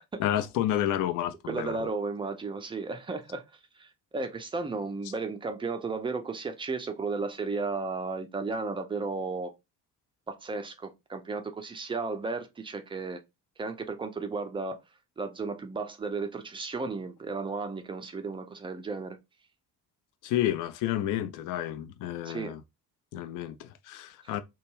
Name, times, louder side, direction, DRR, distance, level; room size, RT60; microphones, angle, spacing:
voice 1, 0.2-1.9 20.2-22.6 23.1-24.4, left 12 dB, 45° left, 0.4 m, -30 dB
voice 2, 1.5-3.4 3.8-9.5 10.3-13.2 13.6-14.8 15.2-19.2 22.2-22.6 24.2-24.3, right 4 dB, 10° right, 0.4 m, -34 dB
2.3 x 2.2 x 3.2 m
figure-of-eight pair, 40°, 47 cm